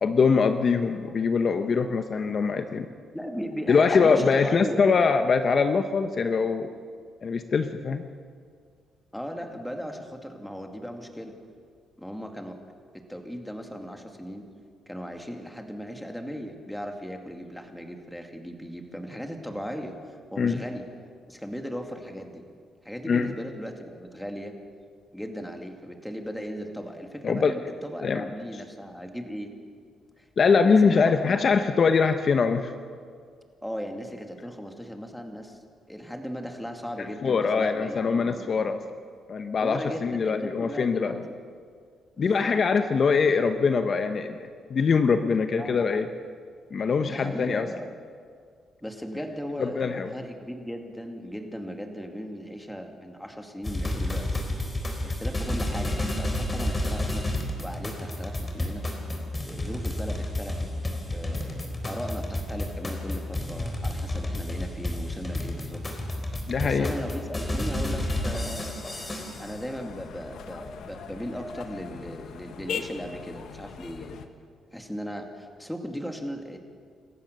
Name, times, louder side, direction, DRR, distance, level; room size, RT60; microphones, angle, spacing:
voice 1, 0.0-2.9 3.7-6.7 7.2-8.0 20.4-20.6 23.1-23.3 27.2-27.5 28.0-28.2 30.4-32.7 37.2-38.8 39.3-41.2 42.2-44.4 44.7-46.1 46.7-47.7 49.6-50.1 66.5-66.9, left 5 dB, 45° left, 8 dB, 1.0 m, -23 dB
voice 2, 3.1-5.0 9.1-11.4 12.0-12.6 12.9-14.5 14.9-20.9 21.3-22.5 22.8-24.6 25.1-29.5 30.2-31.8 33.6-35.6 35.9-38.7 39.6-41.2 42.2-42.5 45.6-45.8 47.0-47.9 48.8-54.5 55.0-57.3 57.6-58.9 59.4-60.7 61.1-65.9 66.6-68.8 69.4-74.2 74.7-76.6, equal, 5° left, 4 dB, 2.4 m, -37 dB
sound 1, 53.6-69.6, left 1 dB, 20° left, 3.9 m, -31 dB
sound 2, 68.0-74.3, left 7 dB, 75° left, 1.5 m, -40 dB
27.5 x 14.5 x 6.8 m, 2.1 s
cardioid pair, 90°, 0 cm